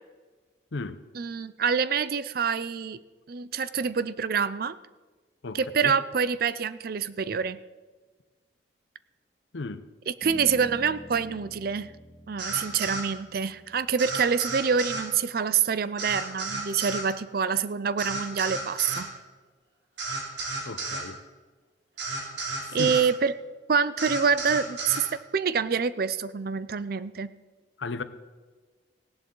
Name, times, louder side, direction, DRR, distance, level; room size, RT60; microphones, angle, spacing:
voice 1, 1.1-3.0 3.3-4.8 5.5-7.6 10.1-11.9 12.3-19.1 22.7-23.3 23.7-25.0 25.3-27.3, right 6 dB, 50° right, 0.5 m, -26 dB
voice 2, 5.4-5.9 9.5-9.8 20.7-21.2 22.8-23.0 27.8-28.0, left 3 dB, 75° left, 0.7 m, -34 dB
Bass guitar, 10.2-14.6, equal, ahead, 2.3 m, -47 dB
sound 1, 12.4-13.1 14.0-15.1 16.0-17.1 18.0-19.1 20.0-21.1 22.0-23.1 24.0-25.1, right 3 dB, 75° right, 3.1 m, -33 dB
17.0 x 11.0 x 3.9 m
head